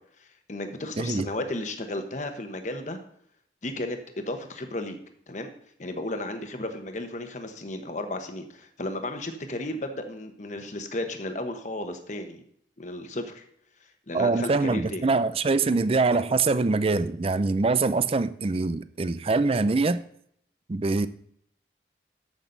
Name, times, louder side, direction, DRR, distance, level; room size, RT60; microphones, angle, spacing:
voice 1, 0.2-3.0 3.6-5.0 5.3-5.5 5.8-12.4 12.8-13.4 14.1-15.0, left 1 dB, 45° left, 1.1 m, -34 dB
voice 2, 1.0-1.3 14.1-20.0 20.7-21.1, right 3 dB, 35° right, 0.4 m, -24 dB
13.5 x 6.1 x 4.0 m
head